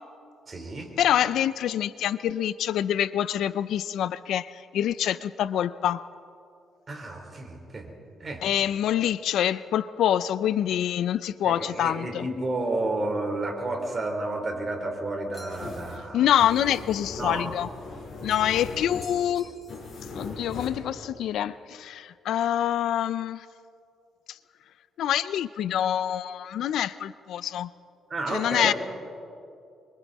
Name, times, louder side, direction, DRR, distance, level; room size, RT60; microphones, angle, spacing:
voice 1, 0.5-0.9 6.9-7.9 8.2-8.4 11.4-16.3 17.2-17.5 28.1-28.7, right 2 dB, 30° right, 2 dB, 3.8 m, -31 dB
voice 2, 1.0-6.1 8.4-12.3 16.1-17.7 18.2-19.5 20.2-23.4 25.0-27.7 28.3-28.7, left 10 dB, 75° left, 16 dB, 0.5 m, -26 dB
sound 1, 15.3-15.8 18.3-18.7 19.0-20.0, left 1 dB, 5° left, 5.1 m, -50 dB
sound 2, 15.5-20.7, left 3 dB, 45° left, 5.8 m, -39 dB
26.0 x 24.5 x 4.2 m, 2.5 s
cardioid pair, 125°, 0 cm